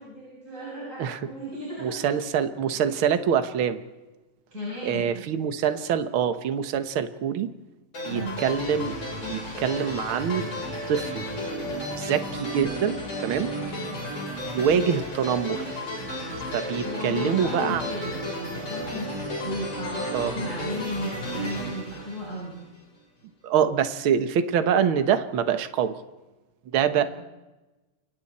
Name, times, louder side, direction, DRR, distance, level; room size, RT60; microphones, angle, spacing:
voice 1, 0.0-2.0 4.5-5.1 8.1-8.5 13.5-14.1 16.8-22.6 27.0-27.1, equal, 20° right, -7 dB, 8.0 m, -35 dB
voice 2, 1.8-3.8 4.8-7.5 8.0-9.0 9.3-10.5 10.9-11.3 12.0-13.5 14.4-15.8 16.5-17.8 20.1-20.3 23.4-26.0 26.7-27.0, right 8 dB, 65° right, 10 dB, 1.3 m, -25 dB
sound 1, 7.9-22.8, left 1 dB, 45° left, 8.9 m, -33 dB
29.5 x 25.0 x 4.3 m, 1.1 s
omnidirectional pair, 4.1 m